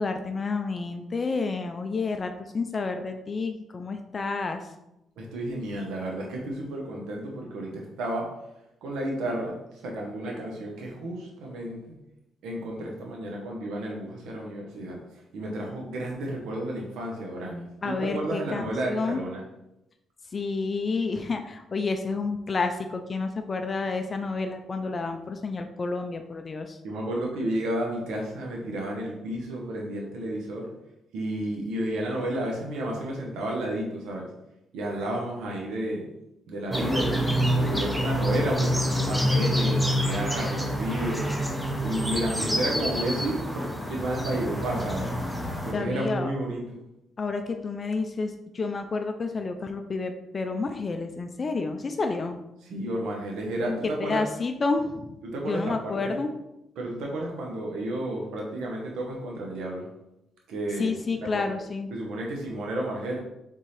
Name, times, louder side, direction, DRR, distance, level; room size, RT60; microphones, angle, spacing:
voice 1, 0.0-4.7 17.8-19.2 20.3-26.8 45.6-46.3 47.2-52.4 53.7-56.3 60.7-61.9, left 4 dB, 35° left, 6 dB, 0.4 m, -30 dB
voice 2, 5.2-8.3 8.8-9.5 9.8-12.0 12.4-15.0 15.3-19.4 26.8-30.7 31.1-34.3 34.7-36.1 36.5-41.3 41.8-45.1 45.6-46.6 52.7-54.2 55.2-56.1 56.8-59.9 60.5-61.5 61.9-63.2, right 1 dB, 85° right, -1 dB, 0.9 m, -31 dB
sound 1, 36.7-45.7, equal, ahead, 0.7 m, -27 dB
4.1 x 3.6 x 3.2 m, 0.89 s
cardioid pair, 90°, 0 cm